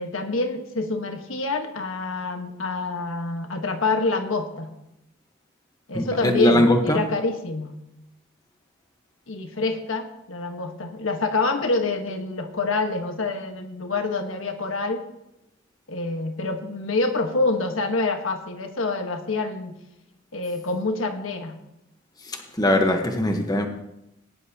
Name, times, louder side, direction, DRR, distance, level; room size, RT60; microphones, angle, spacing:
voice 1, 0.0-4.7 5.9-7.7 9.3-15.0 15.9-19.7 20.3-21.6, left 3 dB, 80° left, 5 dB, 1.3 m, -26 dB
voice 2, 5.9-7.0 22.3-23.7, left 1 dB, 20° left, 4 dB, 1.1 m, -21 dB
17.5 x 10.0 x 2.9 m, 0.86 s
head